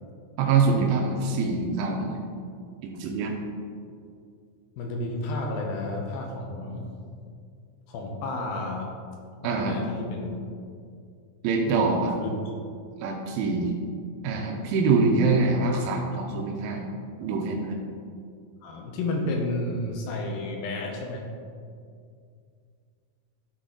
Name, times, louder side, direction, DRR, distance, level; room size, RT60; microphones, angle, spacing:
voice 1, 0.4-2.1 2.8-3.4 9.4-9.8 11.4-12.1 13.0-13.7 14.2-16.8 17.2-17.8, right 4 dB, 85° right, 0 dB, 2.4 m, -24 dB
voice 2, 4.8-6.8 7.9-8.9 9.4-10.4 12.1-12.3 18.6-21.3, left 2 dB, 80° left, 1 dB, 2.5 m, -31 dB
12.0 x 4.2 x 3.8 m, 2.3 s
omnidirectional pair, 4.4 m